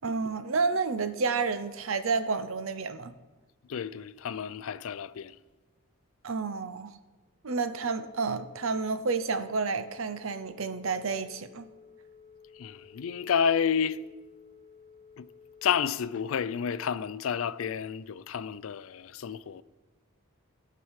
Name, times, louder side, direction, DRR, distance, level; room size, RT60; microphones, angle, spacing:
voice 1, 0.0-3.1 6.2-6.9 7.4-11.7, right 4 dB, 75° right, 0.7 m, -30 dB
voice 2, 3.6-5.4 12.5-14.0 15.2-15.3 15.6-19.6, left 7 dB, 75° left, 0.4 m, -30 dB
Telephone, 7.6-15.9, left 6 dB, 30° right, 2.4 m, -54 dB
16.5 x 6.0 x 4.8 m
head